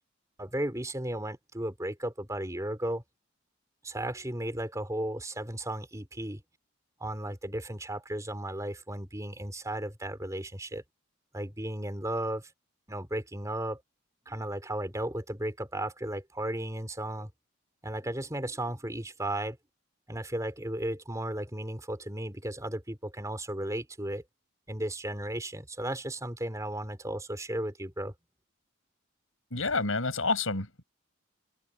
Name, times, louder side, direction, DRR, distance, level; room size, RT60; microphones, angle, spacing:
voice 1, 0.4-3.0 3.8-6.4 7.0-10.8 11.3-12.5 12.9-13.8 14.3-17.3 17.8-19.6 20.1-24.2 24.7-28.1, right 1 dB, 15° right, 4.3 m, -35 dB
voice 2, 29.5-30.8, left 3 dB, 85° left, 5.1 m, -29 dB
open air
head